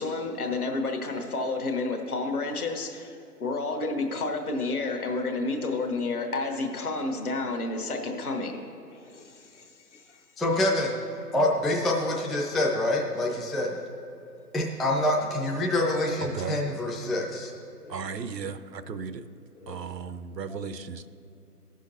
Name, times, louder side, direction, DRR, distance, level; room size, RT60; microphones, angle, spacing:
voice 1, 0.0-3.1 3.4-8.6, left 3 dB, 60° left, 3 dB, 1.3 m, -30 dB
voice 2, 8.9-10.2 17.8-18.2 19.6-19.9 20.5-20.6, left 3 dB, 45° left, 3 dB, 0.8 m, -50 dB
voice 3, 10.4-11.0 11.3-13.8 14.5-17.5, left 1 dB, ahead, -2 dB, 0.3 m, -26 dB
voice 4, 17.9-19.2 19.7-21.1, right 6 dB, 80° right, 12 dB, 0.7 m, -35 dB
14.5 x 6.3 x 2.7 m, 2.6 s
figure-of-eight pair, 150°, 49 cm